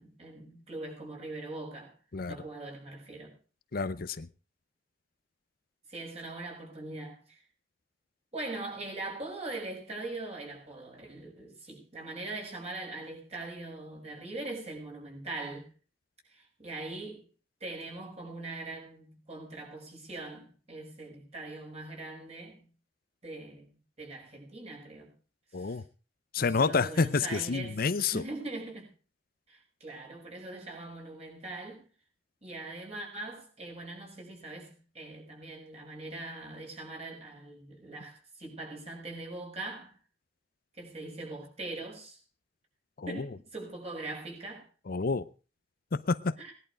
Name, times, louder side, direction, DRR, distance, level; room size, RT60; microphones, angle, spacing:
voice 1, 0.0-1.9 2.3-3.3 5.9-7.4 8.3-15.7 16.3-17.2 17.6-22.6 23.2-25.1 25.5-25.8 26.4-27.9 28.1-28.9 29.5-31.9 32.4-39.9 40.8-42.2 43.1-44.7 46.4-46.5, right 2 dB, 35° right, 6.5 m, -41 dB
voice 2, 3.7-4.3 25.5-25.8 26.3-28.2 43.0-43.3 44.9-45.3 45.9-46.3, left 4 dB, 55° left, 0.6 m, -29 dB
19.0 x 11.5 x 5.1 m
head